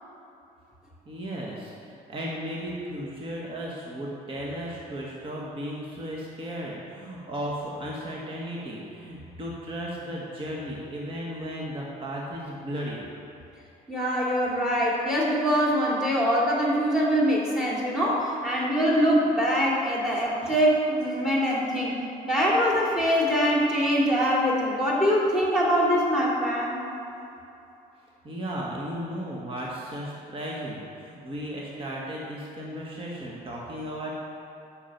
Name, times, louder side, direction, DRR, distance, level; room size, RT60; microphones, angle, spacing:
voice 1, 1.0-13.0 20.4-20.5 28.2-34.2, equal, 30° right, -4 dB, 1.5 m, -35 dB
voice 2, 13.9-21.9 22.3-26.8, equal, 5° right, -4 dB, 2.4 m, -23 dB
8.6 x 6.7 x 5.9 m, 2.8 s
cardioid pair, 110°, 17 cm